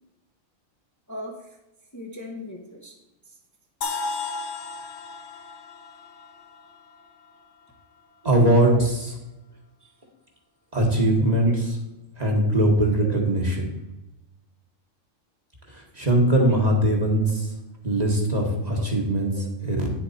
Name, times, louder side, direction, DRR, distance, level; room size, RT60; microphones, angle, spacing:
voice 1, 1.9-3.0 4.8-4.9 8.7-8.8 9.8-9.9 11.4-11.5 13.0-13.2 16.5-17.0 18.7-18.9 19.3-19.5, equal, 15° left, 0 dB, 1.1 m, -38 dB
sound 1, 3.8-7.7, left 4 dB, 60° left, 1.1 m, -35 dB
voice 2, 8.2-8.7 10.7-11.8 12.2-13.7 15.7-17.5 17.8-19.9, right 1 dB, 30° right, 0 dB, 1.7 m, -21 dB
9.9 x 6.9 x 4.3 m, 0.96 s
omnidirectional pair, 1.3 m